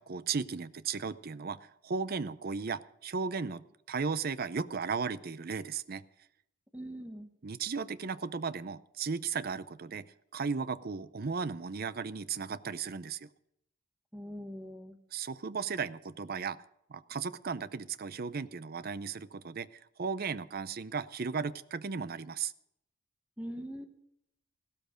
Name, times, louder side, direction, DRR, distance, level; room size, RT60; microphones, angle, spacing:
voice 1, 0.0-6.0 7.4-10.0 10.3-13.3 15.1-16.6 16.9-22.5, right 5 dB, 50° right, 16 dB, 0.6 m, -36 dB
voice 2, 6.7-7.3 14.1-15.0 23.4-23.9, equal, 5° right, 7 dB, 1.2 m, -42 dB
15.0 x 13.0 x 5.1 m, 0.77 s
head